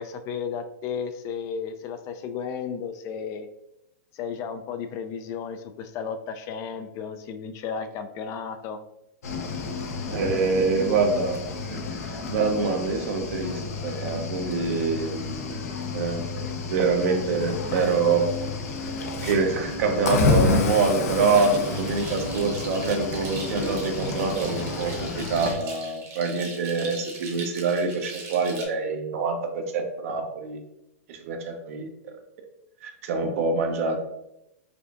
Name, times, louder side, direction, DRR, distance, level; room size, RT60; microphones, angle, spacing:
voice 1, 0.0-3.5 4.1-8.8, left 6 dB, 35° left, 8 dB, 0.3 m, -33 dB
Cricket / Waves surf, 9.2-25.5, left 3 dB, 75° left, 0.7 m, -30 dB
voice 2, 10.1-11.4 11.7-11.8 12.3-16.2 16.7-18.3 19.2-30.6 31.1-31.9 32.8-34.0, right 4 dB, 65° right, 4 dB, 0.7 m, -25 dB
sound 1, 21.3-28.6, right 3 dB, 40° right, 1.0 m, -40 dB
4.8 x 2.5 x 2.4 m, 0.83 s
hypercardioid pair, 130°, 8 cm